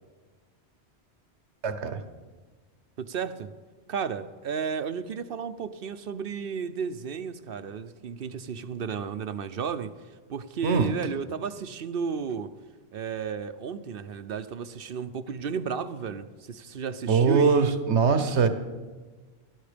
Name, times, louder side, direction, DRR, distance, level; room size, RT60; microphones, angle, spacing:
voice 1, 1.6-2.0 10.6-10.9 17.1-18.5, right 5 dB, 85° right, 10 dB, 1.4 m, -22 dB
voice 2, 3.0-3.5 3.9-12.5 12.9-17.7, right 6 dB, 60° right, 12 dB, 0.9 m, -33 dB
19.0 x 12.0 x 5.1 m, 1.4 s
omnidirectional pair, 1.1 m